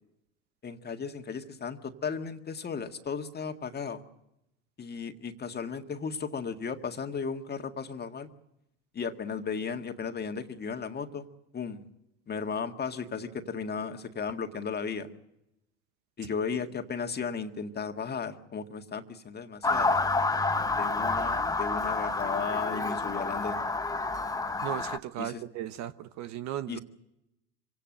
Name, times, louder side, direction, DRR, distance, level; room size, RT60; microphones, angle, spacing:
voice 1, 0.6-4.0 4.8-8.3 8.9-11.3 11.5-11.9 12.3-15.1 16.2-20.0 20.7-23.6 25.2-25.4 26.7-26.8, left 5 dB, 30° left, 6 dB, 1.8 m, -35 dB
Motor vehicle (road) / Siren, 19.6-25.0, left 3 dB, 10° left, 1.0 m, -29 dB
voice 2, 24.6-26.8, right 11 dB, 50° right, 12 dB, 1.1 m, -36 dB
25.5 x 17.5 x 7.8 m, 0.88 s
hypercardioid pair, 80°, 34 cm